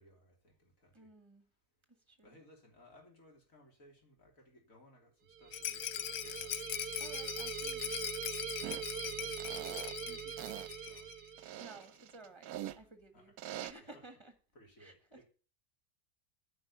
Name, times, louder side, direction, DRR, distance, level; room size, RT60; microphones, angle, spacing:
voice 1, 0.0-1.1 1.9-6.8 8.9-11.1 12.7-13.3 13.8-14.1 14.5-15.3, equal, 55° left, 3.7 m, -62 dB
voice 2, 0.9-1.5 2.1-2.4 7.0-8.1 10.1-10.3 11.6-13.3 13.6-14.3 14.8-15.2, right 2 dB, 20° right, 1.6 m, -55 dB
sound 1, 5.3-11.7, right 9 dB, 45° right, 0.9 m, -43 dB
Rattle, 5.5-11.2 11.5-11.6 11.8-11.9, left 12 dB, 85° left, 1.2 m, -41 dB
sound 2, 8.6-8.9 9.4-10.0 10.4-10.7 11.4-12.8 13.4-13.7, right 12 dB, 75° right, 1.1 m, -43 dB
9.5 x 5.5 x 8.3 m
omnidirectional pair, 1.7 m